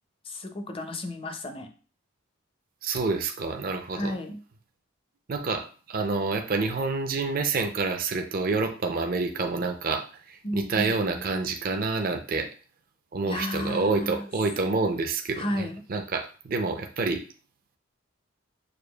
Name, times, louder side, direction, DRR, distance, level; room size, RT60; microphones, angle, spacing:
voice 1, 0.2-1.7 3.9-4.4 10.4-11.3 13.3-14.3 15.4-15.8, left 1 dB, 25° left, 6 dB, 0.5 m, -33 dB
voice 2, 2.8-4.1 5.3-12.5 13.1-17.2, right 3 dB, 45° right, 4 dB, 0.5 m, -28 dB
6.4 x 2.4 x 2.3 m, 0.38 s
head